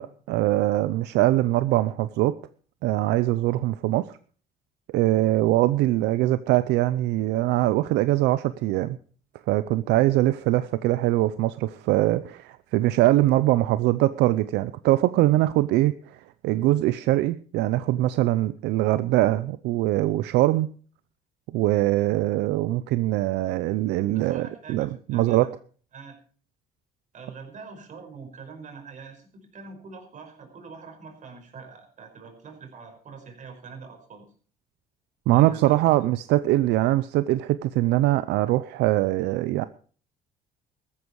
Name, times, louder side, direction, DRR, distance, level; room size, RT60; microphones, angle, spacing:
voice 1, 0.0-2.4 2.8-4.2 4.9-9.0 9.5-16.2 16.4-20.7 21.5-25.5 35.3-39.6, right 16 dB, 85° right, 14 dB, 0.6 m, -22 dB
voice 2, 24.1-25.5 25.9-26.2 27.1-34.3 35.3-36.0, right 5 dB, 50° right, 4 dB, 5.3 m, -44 dB
14.5 x 12.5 x 4.7 m, 0.42 s
cardioid pair, 110°, 17 cm